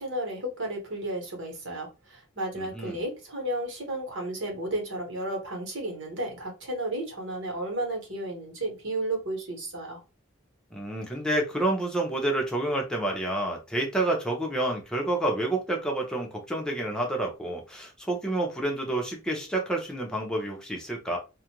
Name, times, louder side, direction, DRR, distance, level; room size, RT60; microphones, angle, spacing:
voice 1, 0.0-10.0, right 1 dB, 65° right, 1 dB, 1.2 m, -33 dB
voice 2, 2.6-3.0 10.7-21.2, right 1 dB, 5° left, 0 dB, 0.7 m, -29 dB
2.4 x 2.1 x 2.9 m, 0.28 s
head